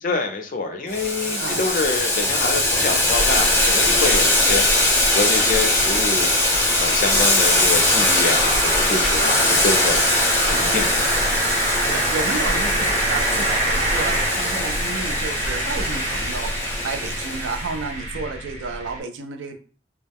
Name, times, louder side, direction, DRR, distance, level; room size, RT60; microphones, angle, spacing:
voice 1, 0.0-10.1 10.4-11.1, left 3 dB, 45° left, 5 dB, 0.4 m, -26 dB
Boiling, 0.9-17.7, left 1 dB, 15° left, 0.7 m, -21 dB
sound 1, 1.4-19.0, right 1 dB, 35° right, 0.5 m, -28 dB
voice 2, 11.7-19.6, right 4 dB, 90° right, 6 dB, 0.4 m, -31 dB
2.3 x 2.1 x 3.4 m, 0.41 s
head